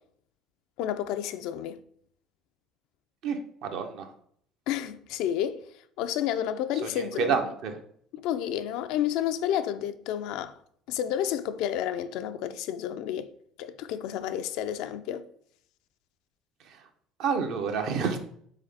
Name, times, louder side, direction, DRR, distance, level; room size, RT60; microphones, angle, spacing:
voice 1, 0.8-1.8 4.7-5.7 6.0-7.4 8.1-10.6 10.9-13.3 13.6-15.3, left 10 dB, 75° left, 0.3 m, -30 dB
voice 2, 3.2-4.1 6.8-7.7 16.7-16.8 17.2-18.2, right 6 dB, 70° right, 0.7 m, -29 dB
3.8 x 3.7 x 3.3 m
supercardioid pair, 85°, 0 cm